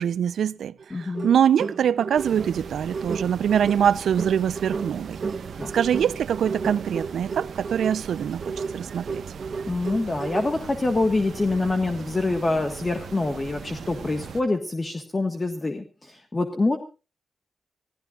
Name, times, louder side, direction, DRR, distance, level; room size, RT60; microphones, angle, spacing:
voice 1, 0.0-5.2 5.7-8.4 8.7-9.2, right 8 dB, 90° right, 0.7 m, -23 dB
Tokyo - Festival Drums and Flute., 0.8-10.6, right 4 dB, 40° right, 1.0 m, -33 dB
voice 2, 0.9-1.3 5.6-5.8 9.7-16.8, left 2 dB, 20° left, 1.6 m, -25 dB
sound 1, 2.2-14.4, right 6 dB, 60° right, 1.3 m, -39 dB
26.5 x 16.5 x 2.5 m
wide cardioid pair, 175°, 0 cm